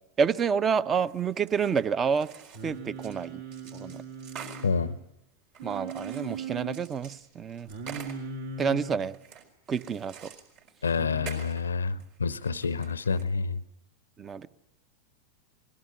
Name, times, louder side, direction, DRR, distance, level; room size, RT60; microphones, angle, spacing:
voice 1, 0.2-2.3 2.6-3.4 3.7-4.0 5.6-7.7 8.6-9.2 9.7-10.3 14.2-14.5, right 6 dB, 25° right, 17 dB, 0.7 m, -28 dB
sound 1, 1.1-3.3 3.5-4.7 5.5-8.2 9.0-10.7 11.1-11.7 12.0-13.2, right 7 dB, 45° right, 4.1 m, -47 dB
Singing, 2.5-5.0 5.6-6.8 7.7-9.0 11.0-11.3, right 5 dB, 65° right, 3.0 m, -39 dB
voice 2, 4.6-4.9 10.8-13.6, left 5 dB, 75° left, 18 dB, 0.7 m, -28 dB
21.0 x 16.5 x 9.3 m, 0.91 s
figure-of-eight pair, 90°, 0 cm